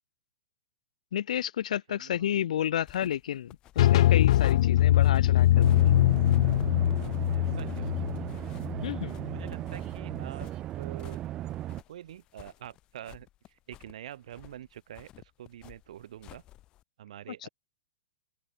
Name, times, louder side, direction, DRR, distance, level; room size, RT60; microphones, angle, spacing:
voice 1, 1.1-5.9 8.8-9.2, left 10 dB, 60° left, 1.7 m, -31 dB
voice 2, 1.9-2.4 7.3-7.9 9.3-10.5 10.8-11.2 11.9-16.4 17.0-17.5, right 11 dB, 55° right, 4.2 m, -46 dB
sound 1, 2.8-16.8, left 15 dB, 20° left, 2.9 m, -51 dB
sound 2, 3.8-9.5, left 13 dB, 45° left, 0.4 m, -22 dB
sound 3, 5.5-11.8, right 13 dB, 15° right, 1.6 m, -37 dB
open air
hypercardioid pair, 175°, 4 cm